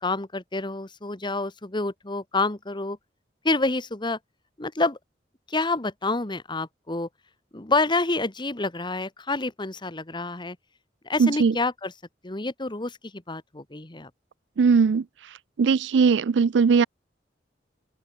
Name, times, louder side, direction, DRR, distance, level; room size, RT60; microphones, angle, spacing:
voice 1, 0.0-3.0 3.4-4.2 4.6-5.0 5.5-7.1 7.5-10.6 11.0-11.9 12.2-14.1, left 3 dB, 25° left, 1.5 m, -28 dB
voice 2, 11.2-11.6 14.6-15.0 15.6-16.9, right 5 dB, 85° right, 0.4 m, -19 dB
open air
head